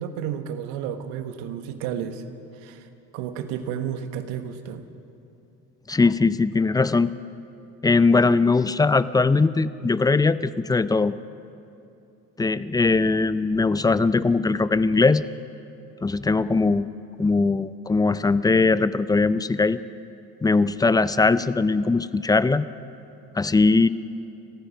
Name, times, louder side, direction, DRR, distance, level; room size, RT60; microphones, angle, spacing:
voice 1, 0.0-2.2 2.6-2.9 3.1-4.9, right 9 dB, 70° right, 9 dB, 1.5 m, -32 dB
voice 2, 5.9-7.1 7.8-11.1 12.4-15.2 16.0-16.9 17.2-19.8 20.4-22.7 23.4-23.9, left 3 dB, 10° left, 16 dB, 0.4 m, -20 dB
30.0 x 14.5 x 6.0 m, 2.8 s
hypercardioid pair, 60°, 47 cm